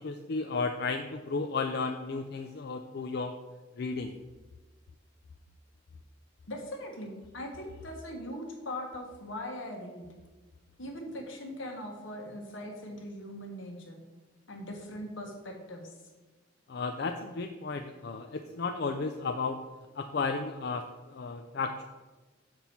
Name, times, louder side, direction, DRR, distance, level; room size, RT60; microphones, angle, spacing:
voice 1, 0.0-3.3 3.8-4.1 16.7-19.6 20.0-21.8, left 4 dB, 55° left, 6 dB, 0.4 m, -33 dB
voice 2, 6.5-10.0 10.8-14.0 14.5-15.9, left 1 dB, 80° left, 2 dB, 1.4 m, -40 dB
7.1 x 6.0 x 4.4 m, 1.2 s
head